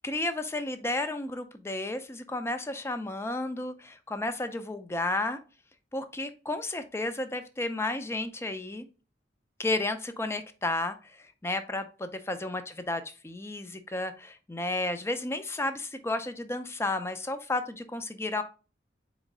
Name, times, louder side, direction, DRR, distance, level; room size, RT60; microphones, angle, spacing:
voice 1, 0.0-5.4 5.9-8.9 9.6-18.4, left 2 dB, 15° left, 9 dB, 0.4 m, -32 dB
4.4 x 3.1 x 3.8 m, 0.33 s
head